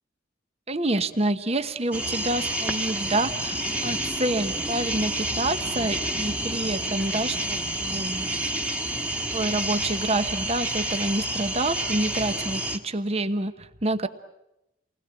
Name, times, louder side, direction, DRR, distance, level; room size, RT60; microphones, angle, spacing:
voice 1, 0.7-8.3 9.3-14.1, right 2 dB, 30° right, 10 dB, 1.1 m, -28 dB
sound 1, 1.9-12.8, right 1 dB, 5° right, 1.6 m, -29 dB
29.5 x 20.5 x 8.9 m, 0.89 s
head